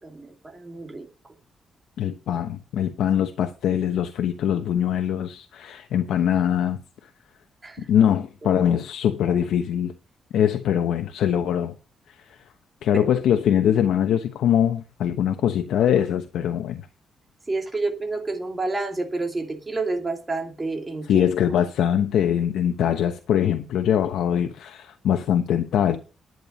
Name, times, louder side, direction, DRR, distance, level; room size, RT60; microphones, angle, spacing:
voice 1, 0.0-1.3 7.6-7.9 8.4-8.6 12.9-13.0 17.5-21.3, right 3 dB, 20° right, 2.7 m, -29 dB
voice 2, 2.0-6.8 7.9-9.9 10.3-11.7 12.1-12.2 12.8-16.8 21.1-26.0, left 9 dB, 85° left, 1.0 m, -22 dB
11.5 x 9.1 x 5.3 m
cardioid pair, 145°, 0 cm